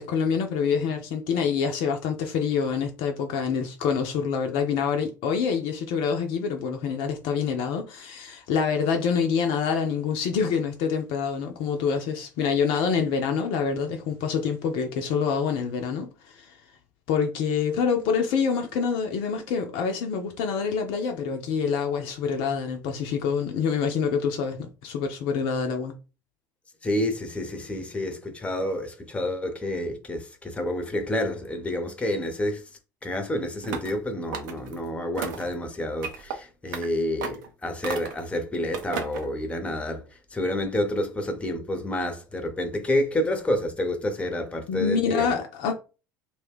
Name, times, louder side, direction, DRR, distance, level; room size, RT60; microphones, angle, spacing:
voice 1, 0.0-16.5 17.1-25.9 44.7-45.7, left 6 dB, 55° left, 0.5 m, -26 dB
voice 2, 26.8-32.7 33.0-45.3, left 1 dB, 10° left, 0.7 m, -29 dB
sound 1, 33.6-34.0 34.3-34.8 35.2-35.5 36.0-36.4 36.7-36.9 37.2-37.5 37.8-38.3 38.7-39.3, right 6 dB, 65° right, 0.6 m, -34 dB
2.5 x 2.2 x 3.5 m
figure-of-eight pair, 65°, 11 cm